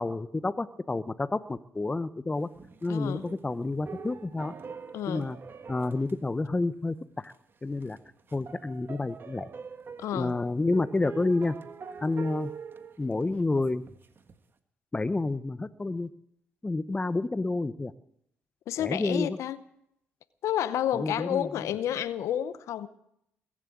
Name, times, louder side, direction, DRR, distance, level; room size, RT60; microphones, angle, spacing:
voice 1, 0.0-2.5 2.8-4.5 5.1-5.4 5.7-7.3 7.6-8.0 8.3-9.5 10.1-11.6 12.0-12.5 13.0-13.8 14.9-16.1 16.6-17.9 18.8-19.4 20.9-21.7, left 2 dB, 20° left, 15 dB, 0.8 m, -29 dB
sound 1, 2.5-6.9 7.2-7.4 7.7-14.4, right 6 dB, 45° right, 1.5 m, -45 dB
voice 2, 2.9-3.2 4.9-5.3 10.0-10.3 18.7-19.6 20.4-22.9, left 11 dB, 70° left, 15 dB, 0.8 m, -30 dB
21.5 x 7.5 x 8.6 m, 0.75 s
supercardioid pair, 60°, 5 cm